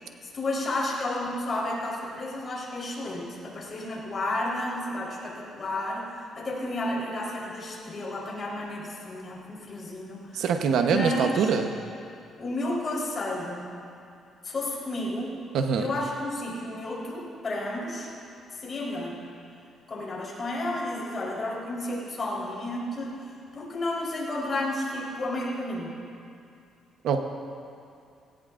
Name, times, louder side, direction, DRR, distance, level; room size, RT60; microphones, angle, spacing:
voice 1, 0.2-10.5 10.9-11.6 12.4-13.7 14.4-15.4 15.8-18.1 18.5-19.2 19.9-23.2 23.5-25.9, left 1 dB, 35° left, -4 dB, 3.9 m, -32 dB
voice 2, 10.3-11.7 15.5-15.8 27.0-27.2, right 6 dB, 75° right, 5 dB, 1.0 m, -24 dB
18.5 x 17.5 x 2.5 m, 2.5 s
cardioid pair, 120°, 0 cm